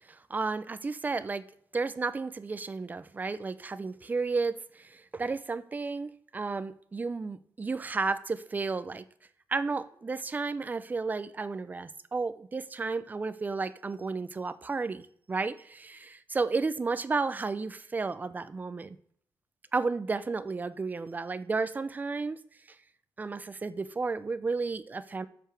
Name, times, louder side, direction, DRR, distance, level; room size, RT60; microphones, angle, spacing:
voice 1, 0.1-1.4 1.7-9.0 9.5-19.0 19.7-22.4 23.2-25.3, right 4 dB, 20° right, 14 dB, 0.4 m, -32 dB
7.4 x 6.9 x 3.3 m, 0.62 s
wide cardioid pair, 145°, 8 cm